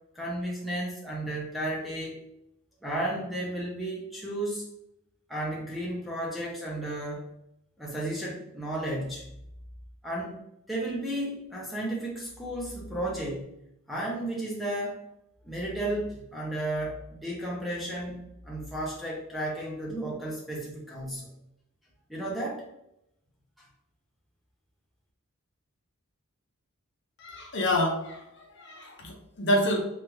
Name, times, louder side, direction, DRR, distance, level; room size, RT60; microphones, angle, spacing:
voice 1, 0.1-2.2 2.8-4.7 5.3-7.3 7.8-9.3 10.0-10.4 10.7-13.5 13.9-15.0 15.4-18.2 18.4-21.3 22.1-22.6, right 1 dB, ahead, -5 dB, 0.6 m, -33 dB
voice 2, 27.2-29.8, left 1 dB, 55° left, 1 dB, 0.6 m, -28 dB
3.2 x 2.4 x 3.0 m, 0.80 s
head